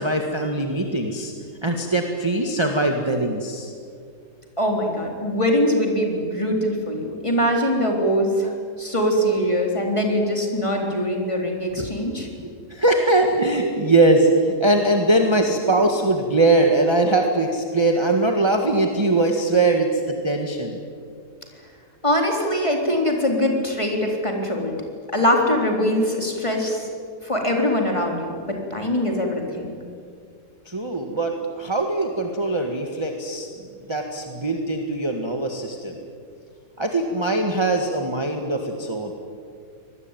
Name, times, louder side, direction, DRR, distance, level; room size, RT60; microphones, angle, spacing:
voice 1, 0.0-1.3 1.6-3.7 11.8-11.9 12.4-20.8 30.6-33.5 33.9-36.0 36.8-39.1, right 2 dB, 15° right, 3 dB, 1.7 m, -21 dB
voice 2, 4.6-12.3 22.0-24.7 25.1-26.9 27.2-29.8, equal, 15° left, 1 dB, 3.8 m, -22 dB
25.0 x 20.0 x 9.2 m, 2.2 s
omnidirectional pair, 1.8 m